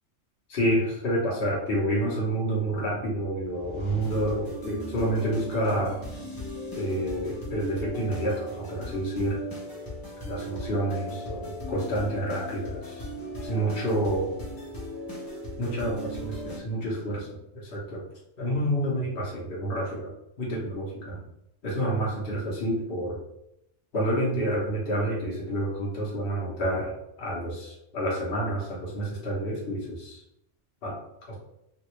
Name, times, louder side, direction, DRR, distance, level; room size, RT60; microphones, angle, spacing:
voice 1, 0.5-6.0 6.7-9.4 10.2-13.1 13.4-14.3 15.6-17.3 17.5-18.0 18.4-20.1 20.4-21.2 21.6-23.2 23.9-30.2 30.8-31.0 31.3-31.4, right 1 dB, 50° left, -5 dB, 1.1 m, -29 dB
sound 1, 3.4-6.4, left 1 dB, 80° left, 1.1 m, -44 dB
sound 2, 4.0-16.6, equal, 20° left, 0.9 m, -38 dB
3.3 x 2.6 x 3.0 m, 0.80 s
omnidirectional pair, 1.3 m